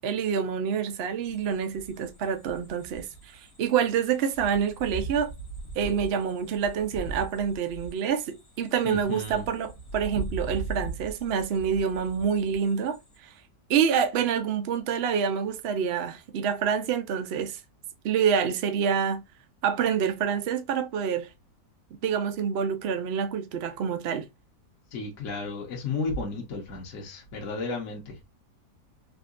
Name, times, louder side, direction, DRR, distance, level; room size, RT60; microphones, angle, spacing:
voice 1, 0.0-3.1 3.3-5.3 5.8-13.3 13.7-17.6 18.0-19.2 19.6-21.3 22.0-24.3, right 7 dB, 75° right, 0.5 m, -27 dB
sound 1, 1.2-13.2, right 3 dB, 30° left, 0.8 m, -40 dB
voice 2, 8.8-9.5 24.9-28.2, left 3 dB, 50° left, 1.2 m, -33 dB
3.7 x 2.6 x 2.4 m
omnidirectional pair, 1.8 m